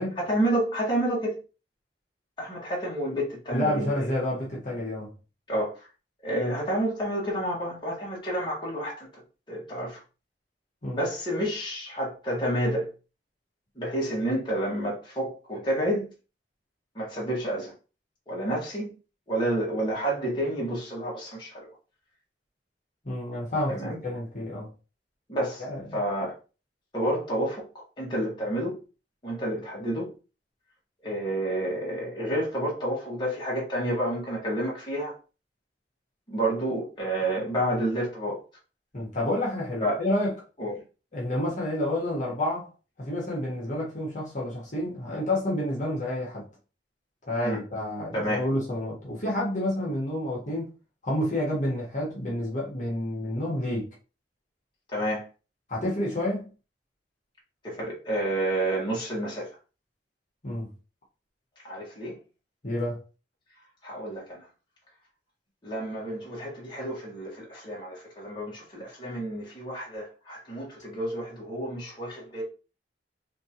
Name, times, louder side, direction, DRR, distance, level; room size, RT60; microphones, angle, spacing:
voice 1, 0.2-1.4 2.4-4.1 5.5-5.9 6.2-9.1 9.5-10.0 10.9-12.9 13.7-16.1 16.9-17.7 18.3-18.9 19.3-21.7 23.7-24.0 25.3-25.6 25.9-26.3 26.9-28.8 29.2-30.1 31.0-35.1 36.3-38.4 39.8-40.0 40.6-40.7 47.4-47.6 48.1-48.5 54.9-55.2 57.6-59.5 61.6-62.2 63.8-64.5 65.6-72.4, right 1 dB, 25° left, 1.6 m, -29 dB
voice 2, 3.5-5.1 10.8-11.0 23.0-24.7 25.6-26.0 38.9-40.3 41.1-42.7 43.0-46.5 47.3-50.7 51.0-53.9 55.7-56.5 60.4-60.7 62.6-63.0, left 1 dB, 45° left, 1.6 m, -29 dB
4.3 x 2.9 x 2.9 m
head